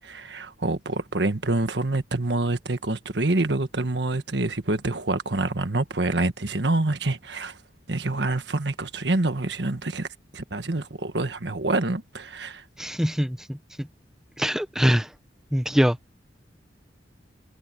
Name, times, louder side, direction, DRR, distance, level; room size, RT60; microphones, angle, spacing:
voice 1, 0.0-7.6 7.9-10.1 10.3-12.6, right 2 dB, 70° right, 1.6 m, -26 dB
voice 2, 12.8-13.6 14.4-15.1 15.5-16.0, equal, 5° right, 1.3 m, -23 dB
head